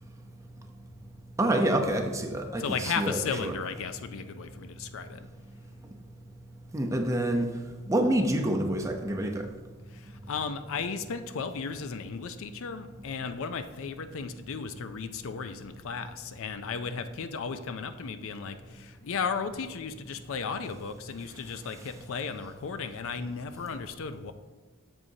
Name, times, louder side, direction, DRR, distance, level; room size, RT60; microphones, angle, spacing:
voice 1, 1.4-3.5 6.7-7.5 7.9-9.5, right 1 dB, 15° right, 3 dB, 0.6 m, -27 dB
voice 2, 2.6-5.2 9.9-24.3, left 5 dB, 65° left, 10 dB, 0.4 m, -35 dB
8.0 x 7.1 x 2.7 m, 1.3 s
head